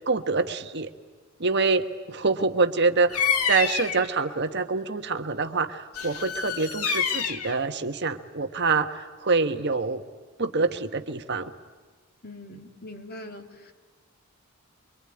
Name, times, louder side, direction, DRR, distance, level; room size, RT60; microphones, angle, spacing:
voice 1, 0.1-0.9 1.4-10.0 10.4-11.5, right 4 dB, 50° right, 8 dB, 1.3 m, -26 dB
Bird vocalization bird call bird song, 3.1-4.1 5.9-7.6, left 7 dB, 90° left, 1.9 m, -27 dB
voice 2, 12.2-13.7, left 1 dB, 45° left, 5 dB, 2.6 m, -42 dB
24.5 x 24.5 x 9.8 m, 1.4 s
head